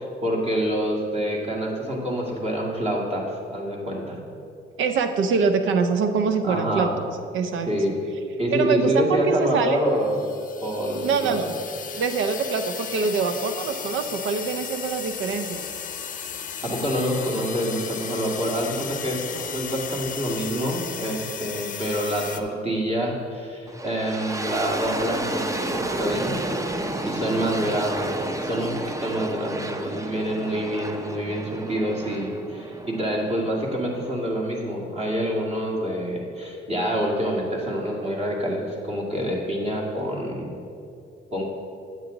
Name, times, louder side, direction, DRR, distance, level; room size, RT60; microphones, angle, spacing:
voice 1, 0.0-4.2 6.4-7.0 7.7-7.9 8.4-10.1 10.6-11.4 16.6-26.3 27.0-28.2 28.4-40.5 41.3-41.5, equal, 30° right, -2 dB, 2.1 m, -27 dB
voice 2, 4.8-6.9 7.3-7.7 8.5-9.8 10.9-11.5 12.0-15.6 19.3-19.6, right 5 dB, 80° right, 8 dB, 0.6 m, -24 dB
sound 1, 10.0-22.4, left 7 dB, 40° left, 0.6 m, -35 dB
sound 2, 23.7-34.6, right 1 dB, 15° right, 0.6 m, -31 dB
9.0 x 8.2 x 3.9 m, 2.7 s
cardioid pair, 90°, 20 cm